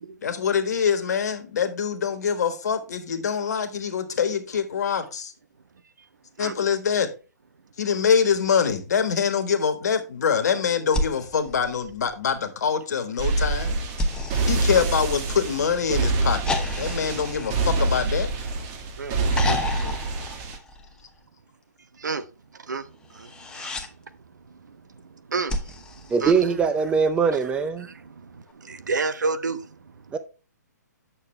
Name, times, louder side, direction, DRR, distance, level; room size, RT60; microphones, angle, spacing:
voice 1, 0.2-5.3 6.4-7.1 7.8-13.8 14.4-18.3, left 6 dB, 65° left, 1.4 m, -24 dB
sound 1, 10.9-12.5 14.0-15.7 16.5-18.7 19.3-21.2 23.1-23.9 25.5-27.0 28.5-28.6, left 2 dB, 10° left, 0.9 m, -33 dB
sound 2, 13.2-20.6, right 2 dB, 30° right, 1.5 m, -26 dB
voice 2, 19.4-20.0 22.0-22.2 22.7-22.9 23.2-23.3 23.6-23.7 25.3-25.5 26.2-26.5 27.8-27.9 28.7-29.6, right 4 dB, 80° right, 0.9 m, -29 dB
voice 3, 26.1-27.9 30.1-30.2, right 5 dB, 10° right, 0.5 m, -22 dB
8.7 x 6.6 x 3.3 m
hypercardioid pair, 135°, 10 cm